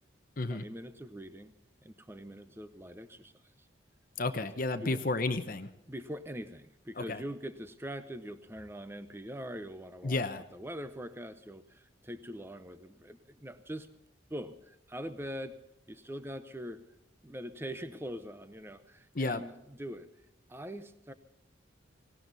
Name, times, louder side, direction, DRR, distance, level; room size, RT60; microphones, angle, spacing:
voice 1, 0.5-1.5 1.8-3.3 4.8-5.0 5.9-10.2 10.5-13.9 14.3-15.5 15.9-16.8 17.2-20.1 20.5-21.1, equal, 10° right, 11 dB, 0.8 m, -43 dB
voice 2, 4.2-5.7 7.0-7.2 10.0-10.4 19.1-19.4, left 2 dB, 45° left, 9 dB, 0.9 m, -32 dB
18.5 x 18.0 x 4.1 m, 0.89 s
head